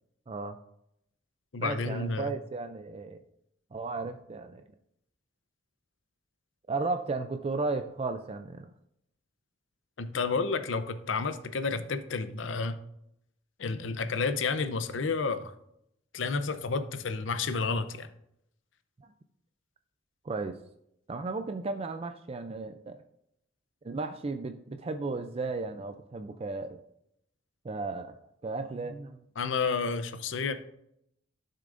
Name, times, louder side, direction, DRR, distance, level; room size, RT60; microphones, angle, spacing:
voice 1, 0.3-0.6 1.6-3.2 3.7-4.6 6.7-8.7 19.0-19.1 20.2-20.6 21.1-23.0 23.8-26.8 27.6-28.2 28.4-29.2, right 3 dB, 30° right, 8 dB, 0.4 m, -34 dB
voice 2, 1.5-2.3 10.0-12.8 13.6-15.5 16.1-18.1 29.4-30.5, left 4 dB, 75° left, 11 dB, 0.7 m, -30 dB
12.0 x 6.6 x 2.6 m, 0.76 s
head